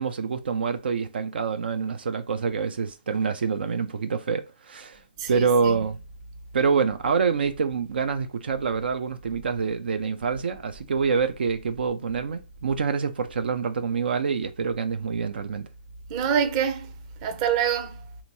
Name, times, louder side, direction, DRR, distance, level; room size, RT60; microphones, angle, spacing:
voice 1, 0.0-5.0 5.3-6.0 6.5-15.7, right 5 dB, 70° right, 0.5 m, -26 dB
voice 2, 5.2-5.9 16.1-16.9 17.2-18.1, right 8 dB, 35° right, 0.8 m, -26 dB
3.6 x 2.9 x 4.0 m
hypercardioid pair, 140°, 6 cm